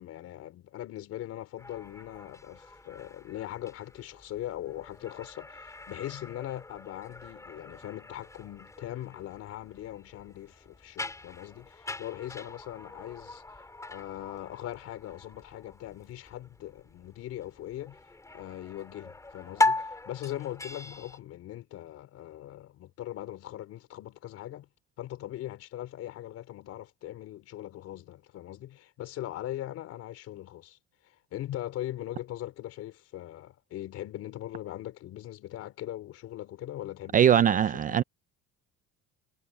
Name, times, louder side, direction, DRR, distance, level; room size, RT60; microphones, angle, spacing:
voice 1, 0.0-13.4 13.9-18.0 18.3-24.7 25.0-30.8 31.0-38.0, left 13 dB, 55° left, 4.4 m, -40 dB
sound 1, 1.6-21.2, left 2 dB, 10° left, 5.9 m, -39 dB
voice 2, 37.1-38.0, right 9 dB, 30° right, 0.4 m, -21 dB
cardioid pair, 165°, 29 cm